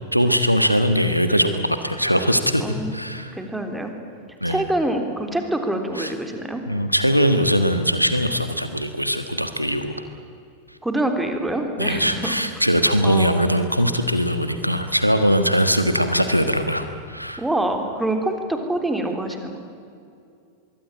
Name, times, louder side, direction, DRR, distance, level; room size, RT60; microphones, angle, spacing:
voice 1, 0.1-2.6 2.9-3.3 4.4-4.6 6.0-6.1 6.7-9.9 11.8-17.4, equal, 90° right, 8 dB, 1.5 m, -21 dB
voice 2, 2.6-2.9 3.3-3.9 4.4-6.6 10.8-12.3 12.8-13.5 17.4-19.6, right 1 dB, 5° right, 5 dB, 3.6 m, -25 dB
25.0 x 22.5 x 9.0 m, 2.4 s
figure-of-eight pair, 90°, 0 cm